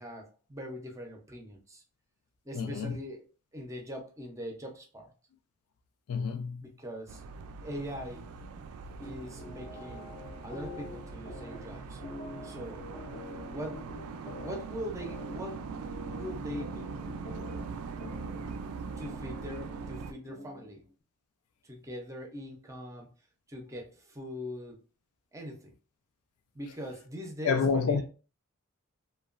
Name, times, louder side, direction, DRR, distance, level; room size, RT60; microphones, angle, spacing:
voice 1, 0.0-1.8 2.4-5.1 6.6-7.2 7.6-8.3 9.0-10.1 10.4-12.0 12.4-12.8 13.5-13.9 14.3-15.7 16.1-17.0 19.0-20.9 21.6-23.1 23.5-24.8 25.3-25.7 26.5-28.0, equal, 15° right, 0.5 m, -42 dB
voice 2, 2.5-3.0 6.1-6.6 27.4-28.0, left 5 dB, 90° left, 0.4 m, -28 dB
sound 1, 7.1-20.1, right 5 dB, 80° right, 0.3 m, -41 dB
sound 2, 9.0-20.8, left 3 dB, 40° left, 0.5 m, -47 dB
2.9 x 2.2 x 2.4 m
head